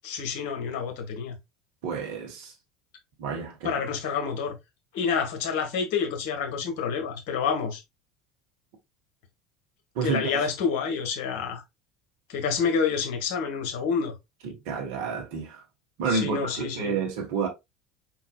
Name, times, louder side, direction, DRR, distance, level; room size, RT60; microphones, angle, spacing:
voice 1, 0.0-1.4 3.6-4.5 4.9-7.8 10.0-11.6 12.3-14.1 16.1-17.0, left 6 dB, 60° left, 1.2 m, -28 dB
voice 2, 1.8-2.5 3.2-3.8 9.9-10.5 14.4-15.6 16.0-17.5, right 5 dB, 60° right, 1.3 m, -30 dB
4.5 x 4.0 x 2.3 m
figure-of-eight pair, 65°, 0 cm